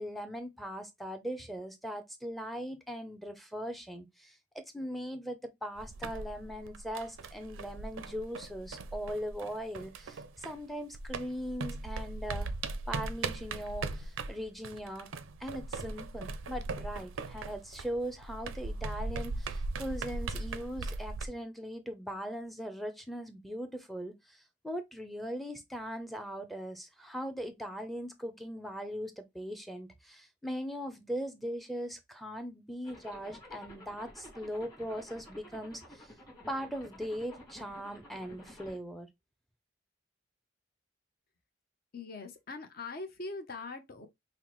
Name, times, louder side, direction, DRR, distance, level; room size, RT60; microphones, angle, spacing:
voice 1, 0.0-12.5 12.9-15.1 15.4-36.1 36.5-39.1, equal, ahead, 0.5 m, -40 dB
sound 1, 5.8-10.7 10.9-21.3, right 3 dB, 80° right, 0.5 m, -39 dB
Zipper (clothing), 32.8-38.8, left 1 dB, 15° left, 1.5 m, -52 dB
voice 2, 41.9-44.1, left 3 dB, 50° left, 0.8 m, -42 dB
5.5 x 2.1 x 3.0 m
head